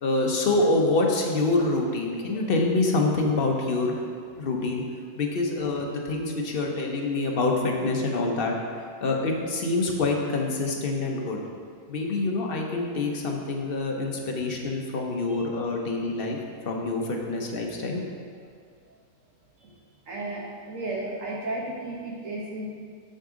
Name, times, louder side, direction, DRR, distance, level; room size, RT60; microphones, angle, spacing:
voice 1, 0.0-4.8 5.1-11.4 11.9-16.4 16.6-18.0, left 2 dB, 50° left, 1 dB, 0.8 m, -26 dB
voice 2, 20.0-22.7, right 2 dB, 60° right, -3 dB, 1.6 m, -34 dB
6.6 x 6.4 x 3.7 m, 2.2 s
omnidirectional pair, 1.5 m